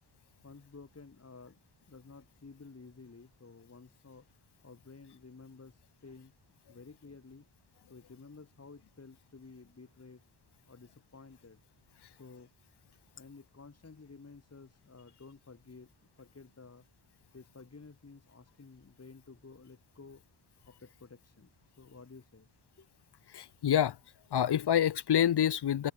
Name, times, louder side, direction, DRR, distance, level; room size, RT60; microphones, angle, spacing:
voice 1, 0.4-1.6 1.9-6.3 6.7-7.5 7.9-10.2 10.7-11.6 12.2-12.5 13.1-16.8 17.3-20.2 20.7-22.5 22.8-22.9, left 4 dB, 30° left, 4.8 m, -53 dB
voice 2, 23.3-24.0 24.3-25.9, left 10 dB, 55° left, 0.8 m, -27 dB
wide cardioid pair, 140°, 47 cm